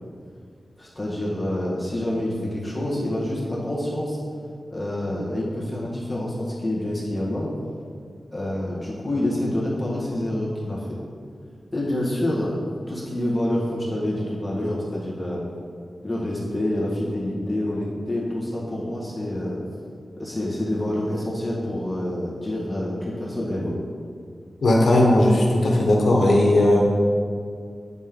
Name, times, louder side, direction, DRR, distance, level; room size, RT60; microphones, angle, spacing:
voice 1, 0.8-4.2 4.7-7.5 8.3-10.8 11.7-12.5 12.9-15.4 16.0-19.6 20.2-23.8, left 1 dB, 15° left, -6 dB, 1.7 m, -27 dB
voice 2, 24.6-26.8, left 1 dB, 85° left, -1 dB, 1.1 m, -17 dB
8.7 x 4.3 x 3.8 m, 2.2 s
wide cardioid pair, 105°, 0 cm